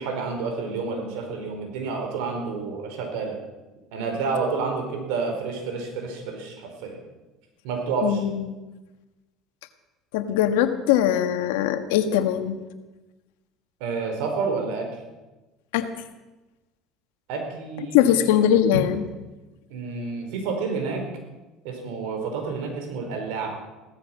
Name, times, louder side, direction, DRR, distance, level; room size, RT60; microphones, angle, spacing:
voice 1, 0.0-3.4 3.9-7.0 7.6-8.2 13.8-14.9 17.3-18.4 19.7-21.0 21.6-23.6, right 4 dB, 80° right, 3 dB, 4.6 m, -29 dB
voice 2, 8.0-8.4 10.1-12.6 15.7-15.9 17.9-19.1, left 10 dB, 85° left, 9 dB, 1.5 m, -21 dB
16.5 x 14.0 x 6.2 m, 1.1 s
supercardioid pair, 110°, 0 cm